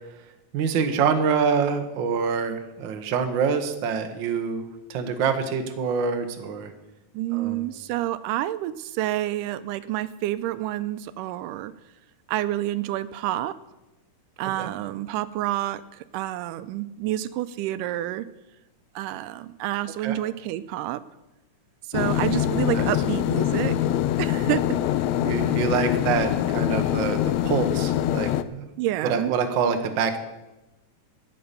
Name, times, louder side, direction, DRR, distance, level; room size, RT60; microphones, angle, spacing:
voice 1, 0.5-6.7 7.3-7.7 14.6-14.7 20.0-20.2 22.7-22.9 25.2-28.7 29.0-30.2, right 6 dB, 60° right, 7 dB, 1.3 m, -26 dB
voice 2, 7.1-11.7 12.3-13.6 14.4-18.3 19.0-21.0 21.9-23.8 24.2-24.8 28.8-29.3, right 14 dB, 85° right, 14 dB, 2.1 m, -28 dB
sound 1, 21.9-28.4, left 12 dB, 85° left, 1.5 m, -24 dB
13.0 x 8.7 x 6.8 m, 1.0 s
omnidirectional pair, 3.7 m